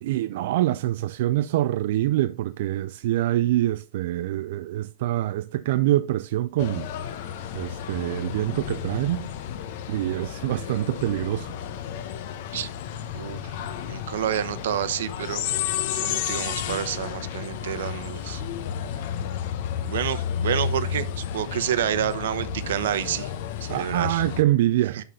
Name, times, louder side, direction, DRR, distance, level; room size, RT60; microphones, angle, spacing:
voice 1, 0.0-6.9 7.5-9.3 9.9-11.5 23.7-25.0, right 14 dB, 55° right, 0.4 m, -25 dB
sound 1, 6.6-24.4, left 9 dB, 50° left, 0.9 m, -32 dB
voice 2, 13.1-13.5 13.9-15.5 15.9-18.4 19.8-23.3 23.6-24.2 24.9-25.0, right 10 dB, 80° right, 1.0 m, -29 dB
11.0 x 3.9 x 5.5 m
supercardioid pair, 175°, 0 cm